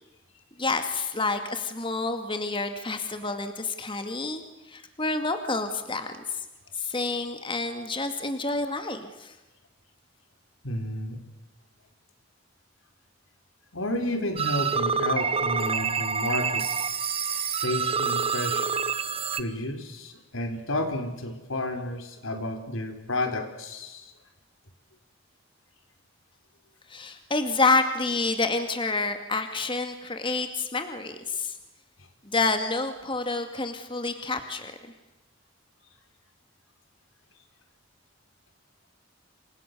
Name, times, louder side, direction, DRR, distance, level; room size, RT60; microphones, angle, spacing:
voice 1, 0.6-4.4 4.7-6.4 6.7-9.4 26.9-31.6 32.2-34.7, left 3 dB, 25° left, 7 dB, 2.2 m, -28 dB
voice 2, 10.6-11.2 13.7-16.7 17.6-18.7 19.4-24.1, left 1 dB, 85° left, 6 dB, 4.5 m, -31 dB
sound 1, 14.4-19.4, right 6 dB, 30° right, 1.3 m, -27 dB
28.5 x 26.5 x 6.9 m, 1.1 s
head